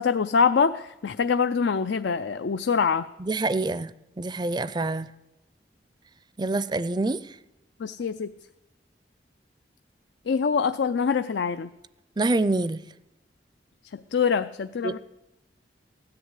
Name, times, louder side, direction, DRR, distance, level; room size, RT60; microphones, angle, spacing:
voice 1, 0.0-3.1 7.8-8.3 10.3-11.7 13.9-15.0, left 6 dB, 80° left, 12 dB, 0.4 m, -24 dB
voice 2, 3.2-3.9 4.2-5.1 6.4-7.2 12.2-12.8 14.8-15.0, right 2 dB, 25° right, 16 dB, 0.5 m, -26 dB
17.0 x 10.5 x 8.1 m, 0.96 s
head